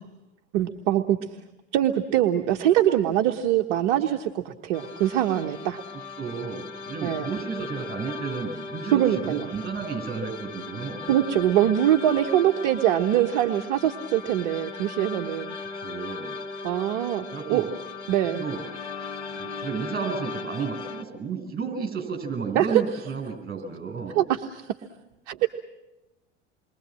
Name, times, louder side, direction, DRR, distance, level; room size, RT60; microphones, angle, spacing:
voice 1, 0.5-1.2 1.7-5.8 7.0-7.3 8.9-9.5 11.1-15.6 16.6-17.6 18.1-18.5 22.5-22.8 24.1-24.7 25.3-25.5, right 12 dB, 55° right, 4 dB, 1.3 m, -23 dB
sound 1, 4.7-21.0, left 4 dB, 75° left, 2.4 m, -37 dB
voice 2, 5.9-11.1 15.7-16.4 17.3-17.7 18.3-18.7 19.3-24.2, right 5 dB, 25° right, 5 dB, 7.3 m, -32 dB
28.5 x 23.0 x 7.6 m, 1.0 s
figure-of-eight pair, 75°, 35 cm